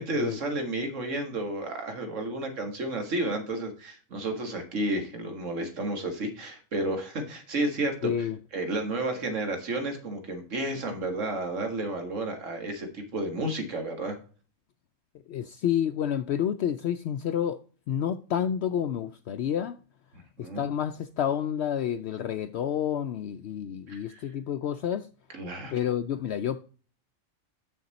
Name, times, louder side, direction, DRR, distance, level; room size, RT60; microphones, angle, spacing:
voice 1, 0.0-14.2 20.1-20.7 23.9-24.2 25.3-25.7, right 2 dB, 70° right, 2.0 m, -32 dB
voice 2, 8.0-8.4 15.3-17.6 17.9-19.8 20.4-25.1 25.7-26.6, left 9 dB, 65° left, 0.7 m, -29 dB
8.6 x 6.7 x 4.1 m
omnidirectional pair, 1.3 m